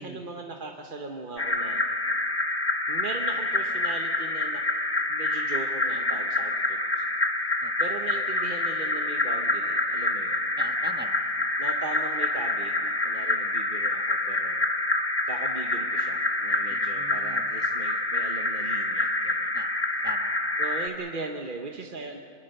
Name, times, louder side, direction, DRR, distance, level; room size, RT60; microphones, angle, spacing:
voice 1, 0.0-1.8 2.9-4.6 5.1-7.0 7.8-10.5 11.6-14.7 15.3-19.5 20.6-22.2, right 3 dB, 40° right, 2 dB, 1.1 m, -39 dB
sound 1, 1.4-20.9, left 2 dB, 15° left, 1.4 m, -27 dB
voice 2, 10.6-11.3 16.7-17.5 19.5-19.7 20.0-20.5, right 1 dB, 10° right, 5 dB, 1.2 m, -42 dB
25.5 x 22.0 x 6.7 m, 2.5 s
omnidirectional pair, 1.5 m